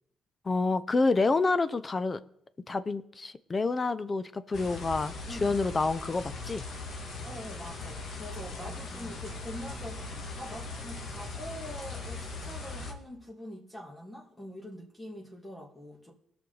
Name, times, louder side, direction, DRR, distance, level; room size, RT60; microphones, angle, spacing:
voice 1, 0.4-2.2 2.7-6.6, left 3 dB, 30° left, 0.6 m, -28 dB
sound 1, 4.5-12.9, left 3 dB, 65° left, 1.7 m, -40 dB
voice 2, 7.2-16.1, equal, 15° left, 2.1 m, -44 dB
18.0 x 6.1 x 4.0 m
cardioid pair, 90°, 0 cm